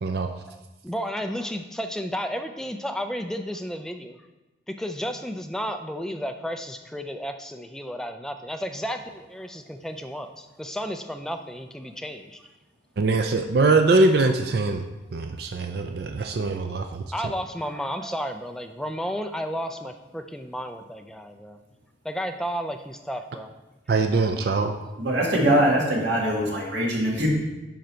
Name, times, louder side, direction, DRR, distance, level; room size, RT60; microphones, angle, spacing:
voice 1, 0.8-4.2 4.7-12.4 17.1-21.6 22.0-23.5, equal, 5° left, 6 dB, 0.4 m, -32 dB
voice 2, 13.0-14.8 15.1-17.0 23.9-24.7, right 3 dB, 55° right, 5 dB, 0.4 m, -22 dB
voice 3, 25.0-27.3, right 1 dB, 70° right, -2 dB, 1.9 m, -22 dB
10.5 x 3.9 x 4.4 m, 1.1 s
head